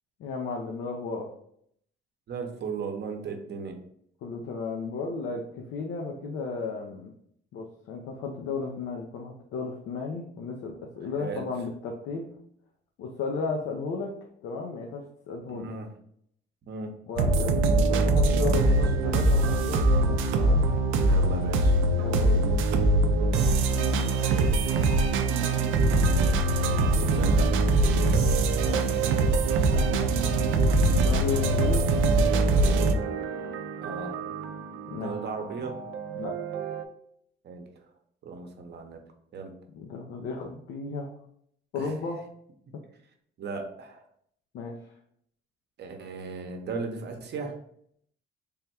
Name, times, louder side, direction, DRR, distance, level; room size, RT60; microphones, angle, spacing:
voice 1, 0.2-1.3 4.2-7.1 7.5-12.2 13.0-14.1 14.4-15.7 17.1-17.6 17.9-20.6 22.0-22.5 23.7-24.3 28.7-29.3 29.6-30.4 30.9-31.8 34.9-35.1 36.2-36.3 39.7-41.1 41.7-42.2 44.5-44.8, left 4 dB, 85° left, 0 dB, 0.6 m, -34 dB
voice 2, 2.3-3.8 11.2-11.4 15.5-15.9 16.6-16.9 18.6-18.8 21.0-21.8 24.0-24.5 27.0-27.5 33.8-34.2 34.9-35.8 37.4-37.7 38.2-39.0 39.3-39.5 41.7-42.0 43.4-44.0 45.8-47.6, right 4 dB, 60° right, 4 dB, 0.7 m, -36 dB
sound 1, 17.2-36.8, right 2 dB, 90° right, 0.4 m, -23 dB
3.5 x 2.2 x 4.2 m, 0.68 s
cardioid pair, 90°, 20 cm